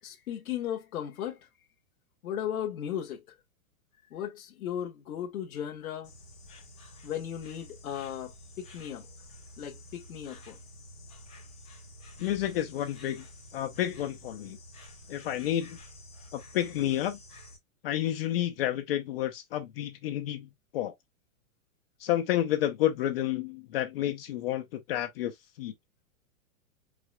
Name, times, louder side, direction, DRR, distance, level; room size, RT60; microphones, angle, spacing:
voice 1, 0.0-1.4 2.2-3.2 4.1-6.1 7.0-9.1 9.6-10.6, left 10 dB, 70° left, 1.4 m, -36 dB
Insect, 6.0-17.6, left 1 dB, 5° left, 0.3 m, -50 dB
voice 2, 12.2-13.3 13.5-14.6 15.1-15.8 16.3-17.2 17.8-20.5 20.7-20.9 22.0-25.7, left 12 dB, 45° left, 0.7 m, -30 dB
4.9 x 4.2 x 2.2 m
supercardioid pair, 160°, 43 cm